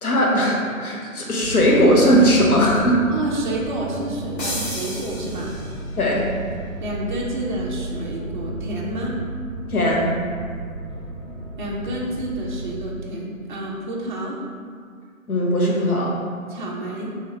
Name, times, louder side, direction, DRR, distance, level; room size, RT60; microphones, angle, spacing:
voice 1, 0.0-3.0 6.0-6.2 9.7-10.1 15.3-16.1, equal, 90° left, -2 dB, 0.9 m, -18 dB
sound 1, 1.4-12.8, right 2 dB, 10° left, 0.8 m, -33 dB
voice 2, 3.1-5.5 6.8-9.2 11.6-14.4 16.5-17.1, right 1 dB, 35° right, -3 dB, 0.4 m, -29 dB
sound 2, 4.4-6.0, left 1 dB, 60° left, 1.3 m, -32 dB
3.3 x 3.1 x 2.8 m, 2.1 s
figure-of-eight pair, 140°, 42 cm